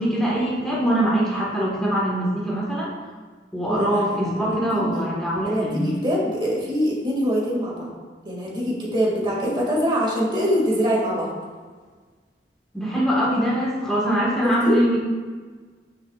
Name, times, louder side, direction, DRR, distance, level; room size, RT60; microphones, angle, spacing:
voice 1, 0.0-2.9 3.5-5.9 12.7-15.0, equal, 5° left, -7 dB, 1.6 m, -23 dB
voice 2, 3.7-4.1 4.4-4.6 4.9-5.0 5.4-7.9 8.3-11.3 14.6-14.8, equal, 25° right, -4 dB, 2.3 m, -23 dB
9.4 x 9.3 x 2.5 m, 1.5 s
head